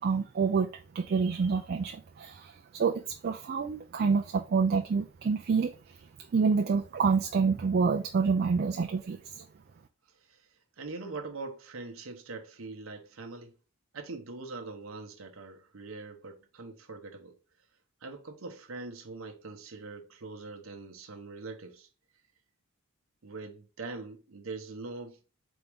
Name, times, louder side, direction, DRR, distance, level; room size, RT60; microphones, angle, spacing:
voice 1, 0.0-6.0 6.3-9.5, right 5 dB, 45° right, 0.3 m, -28 dB
voice 2, 10.1-13.6 13.9-17.4 18.0-21.9 23.2-25.2, right 3 dB, 65° right, 0.8 m, -43 dB
4.0 x 3.5 x 3.4 m
head